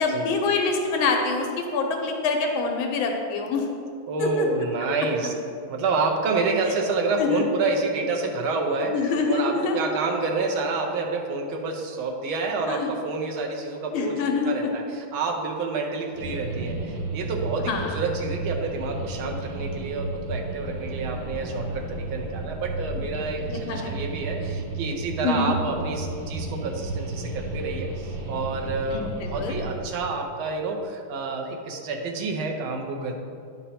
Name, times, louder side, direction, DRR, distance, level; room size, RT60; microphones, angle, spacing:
voice 1, 0.0-3.6 4.2-4.5 7.2-7.4 8.9-9.8 12.7-12.9 13.9-14.5 17.7-17.9 23.5-23.9 25.2-25.5 28.9-29.0 29.4-29.6, left 4 dB, 85° left, 3 dB, 1.7 m, -25 dB
voice 2, 4.1-5.3 5.7-33.1, right 3 dB, 85° right, 1 dB, 1.6 m, -28 dB
sound 1, 16.1-29.8, right 3 dB, 55° right, 1.5 m, -33 dB
10.0 x 4.5 x 4.2 m, 2.4 s
omnidirectional pair, 2.2 m